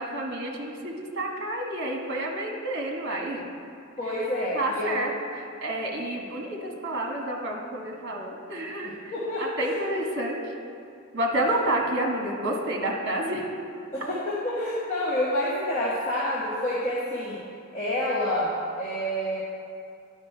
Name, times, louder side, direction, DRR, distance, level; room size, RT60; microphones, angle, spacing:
voice 1, 0.0-3.4 4.1-4.2 4.5-8.9 9.4-10.4 11.1-13.5, right 1 dB, 50° right, 0 dB, 1.1 m, -29 dB
voice 2, 4.0-5.1 8.8-9.8 13.9-17.4 17.7-19.4, left 1 dB, 35° left, -8 dB, 1.1 m, -28 dB
10.5 x 5.2 x 4.4 m, 2.6 s
head